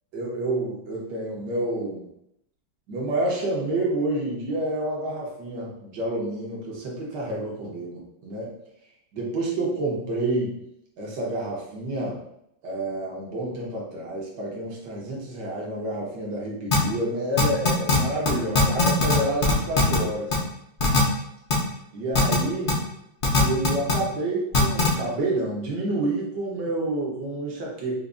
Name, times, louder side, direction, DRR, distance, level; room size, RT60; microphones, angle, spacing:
voice 1, 0.1-2.1 2.9-8.5 9.1-10.5 11.0-12.2 12.6-20.3 21.9-22.7 23.4-28.0, right 2 dB, 65° right, -3 dB, 1.6 m, -29 dB
sound 1, 16.7-16.8 17.4-18.0 18.2-18.3 18.5-19.1 19.4-20.0 20.3-20.4 20.8-21.0 21.5-21.6 22.1-22.3 22.7-22.8 23.2-23.9 24.5-24.9, left 3 dB, 50° left, 0.6 m, -19 dB
4.9 x 2.5 x 2.5 m, 0.79 s
omnidirectional pair, 2.0 m